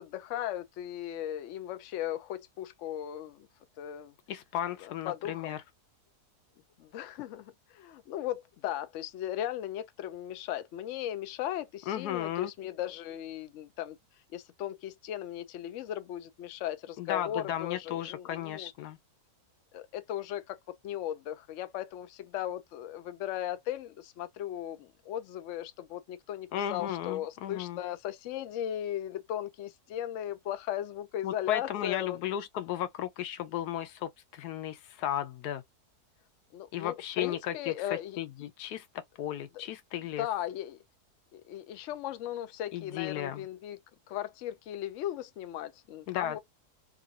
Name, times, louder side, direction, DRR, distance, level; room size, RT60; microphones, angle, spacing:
voice 1, 0.0-3.5 3.8-4.1 4.8-5.6 6.8-14.0 14.3-18.7 19.7-32.2 36.5-38.2 40.2-40.8 41.3-43.8 44.1-46.4, left 12 dB, 65° left, 0.8 m, -37 dB
voice 2, 4.3-5.6 11.9-12.5 17.0-19.0 26.5-27.8 31.2-35.6 36.7-37.7 38.2-40.3 42.7-43.5 46.1-46.4, left 11 dB, 90° left, 1.2 m, -35 dB
3.0 x 2.4 x 2.6 m
omnidirectional pair, 1.7 m